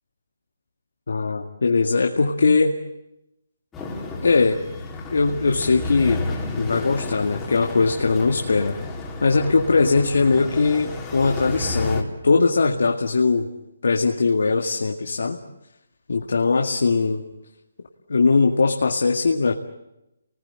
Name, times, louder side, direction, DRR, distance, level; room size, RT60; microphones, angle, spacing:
voice 1, 1.1-2.8 4.2-4.6 5.1-6.2 6.5-8.8 9.2-13.5 13.8-15.4 16.1-17.2 18.1-19.5, left 4 dB, 75° left, 3 dB, 2.1 m, -20 dB
sound 1, 3.7-12.0, left 2 dB, 10° left, 3.5 m, -31 dB
29.0 x 20.0 x 8.9 m, 0.90 s
hypercardioid pair, 165°, 0 cm